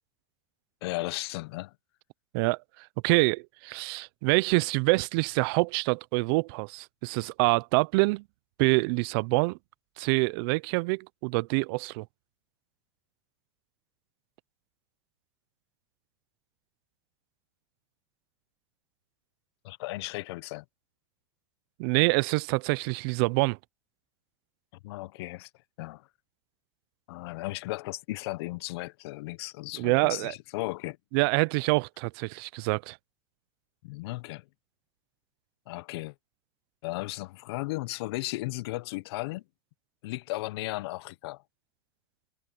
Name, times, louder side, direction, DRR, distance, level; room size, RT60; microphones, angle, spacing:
voice 1, 0.8-1.7 19.6-20.6 24.8-25.5 25.8-26.1 27.1-31.0 33.8-34.4 35.7-36.1 36.8-39.4 40.0-41.4, left 20 dB, 65° left, 1.2 m, -35 dB
voice 2, 3.0-8.2 8.6-9.6 10.0-12.1 21.8-23.6 29.8-30.3 31.1-33.0, right 27 dB, 55° right, 0.8 m, -26 dB
hypercardioid pair, 105°, 14 cm